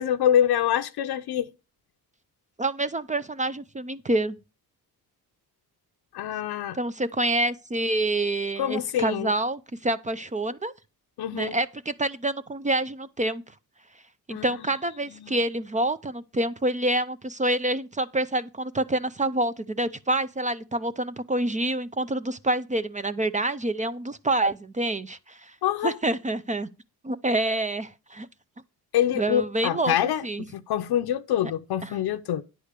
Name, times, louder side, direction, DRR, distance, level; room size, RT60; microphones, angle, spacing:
voice 1, 0.0-1.5 6.1-6.8 8.6-9.3 11.2-11.5 14.3-14.4 15.2-15.3 25.6-25.9 28.9-30.2 30.5-32.4, left 10 dB, 75° left, 0.7 m, -25 dB
voice 2, 2.6-4.4 6.7-10.7 11.3-13.4 14.3-25.5 25.8-26.7 27.0-28.3 29.2-30.5 31.8-32.0, right 1 dB, 20° right, 0.5 m, -27 dB
9.9 x 4.9 x 6.6 m
cardioid pair, 115°, 39 cm